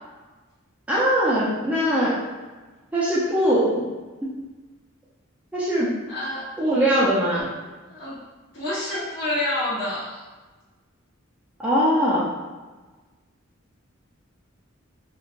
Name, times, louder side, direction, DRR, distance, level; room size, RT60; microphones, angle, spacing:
voice 1, 0.9-2.2 2.9-3.8 4.2-4.3 5.5-5.9 6.6-7.5 11.6-12.3, equal, 5° right, -8 dB, 0.5 m, -21 dB
voice 2, 6.1-6.4 7.9-8.2 8.5-10.2, left 1 dB, 55° left, -12 dB, 1.1 m, -28 dB
3.2 x 2.5 x 2.5 m, 1.3 s
head